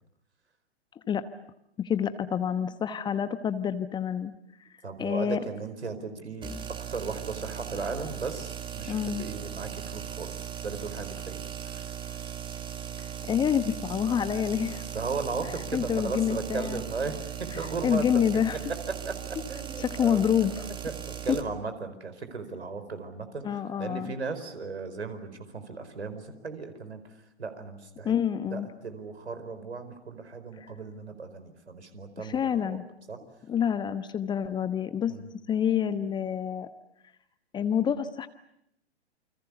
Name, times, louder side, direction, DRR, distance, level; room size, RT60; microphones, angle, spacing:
voice 1, 1.8-4.3 5.0-5.4 8.9-9.2 13.3-14.9 15.4-16.8 17.5-18.6 19.8-20.7 23.4-24.1 28.0-28.7 30.6-30.7 32.2-32.8 33.5-35.1 35.5-36.7 37.5-38.3, left 8 dB, 15° left, 12 dB, 1.0 m, -27 dB
voice 2, 4.8-6.5 6.9-10.3 10.6-11.8 14.9-17.2 17.5-18.4 19.1-19.2 19.5-20.2 20.8-23.4 23.8-27.0 27.4-28.1 28.5-32.8 33.1-33.2 35.0-35.3, right 4 dB, 70° right, 9 dB, 4.8 m, -36 dB
sound 1, 6.4-21.4, right 9 dB, 15° right, 2.0 m, -38 dB
29.0 x 26.5 x 7.0 m, 0.78 s
figure-of-eight pair, 110°, 34 cm